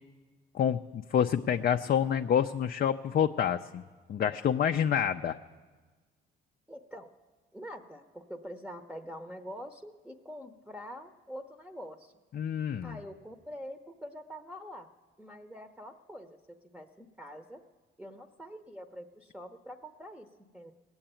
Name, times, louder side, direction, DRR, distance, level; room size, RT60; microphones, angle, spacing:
voice 1, 0.5-3.8 4.1-5.4 12.3-13.0, left 8 dB, 50° left, 6 dB, 0.5 m, -28 dB
voice 2, 6.7-7.1 7.5-12.1 12.8-14.9 15.2-17.6 18.0-20.7, equal, 5° right, 6 dB, 0.8 m, -45 dB
19.5 x 8.0 x 8.9 m, 1.4 s
cardioid pair, 90°, 20 cm